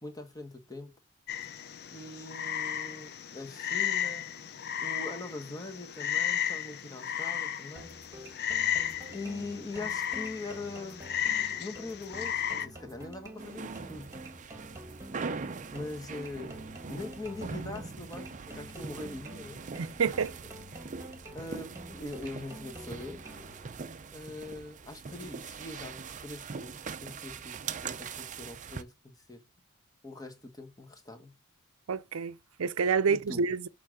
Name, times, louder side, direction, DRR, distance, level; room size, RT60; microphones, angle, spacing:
voice 1, 0.0-0.9 1.9-4.3 4.8-7.9 8.3-8.4 9.1-11.0 11.6-14.1 15.7-16.6 16.9-19.6 21.3-23.2 24.1-26.8 27.0-27.6 27.8-29.4 30.0-31.3 33.1-33.4, left 2 dB, 20° left, 1.3 m, -42 dB
Frog, 1.3-12.7, left 9 dB, 50° left, 0.6 m, -34 dB
sound 1, 7.8-23.8, right 1 dB, 15° right, 1.7 m, -48 dB
sound 2, 13.4-28.8, right 5 dB, 35° right, 0.5 m, -42 dB
voice 2, 19.8-20.3 31.9-33.7, right 5 dB, 85° right, 0.6 m, -28 dB
6.9 x 3.8 x 6.2 m
head